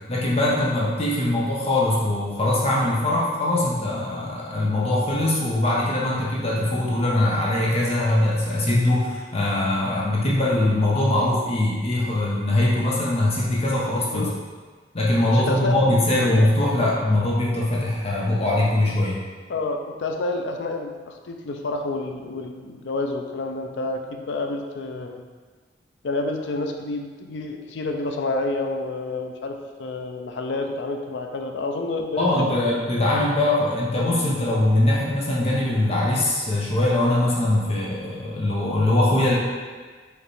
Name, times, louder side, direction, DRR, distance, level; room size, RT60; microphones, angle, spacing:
voice 1, 0.1-14.2 14.9-19.2 32.2-39.4, left 1 dB, 35° left, -5 dB, 0.8 m, -22 dB
voice 2, 15.3-15.8 16.2-16.4 19.5-25.2 26.0-32.7, left 2 dB, 80° left, 4 dB, 0.5 m, -29 dB
5.1 x 3.0 x 3.1 m, 1.5 s
head